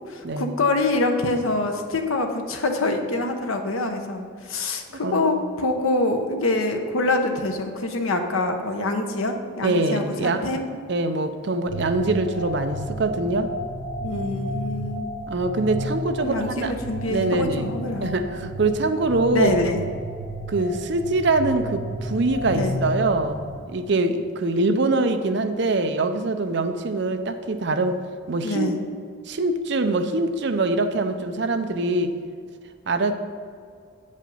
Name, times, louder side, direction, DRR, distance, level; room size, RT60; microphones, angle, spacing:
voice 1, 0.1-10.6 14.0-15.1 16.2-18.1 19.3-19.8 22.5-22.8 28.4-28.8, left 2 dB, 85° left, 5 dB, 1.0 m, -25 dB
voice 2, 5.0-5.4 9.6-10.4 10.9-13.5 15.3-16.7 17.1-17.7 18.0-19.6 20.5-28.0 28.3-28.7 29.3-32.1 32.9-33.1, right 2 dB, 55° right, 8 dB, 0.6 m, -23 dB
sound 1, 11.7-23.6, equal, 85° right, 1.1 m, -32 dB
8.9 x 5.3 x 5.4 m, 2.2 s
head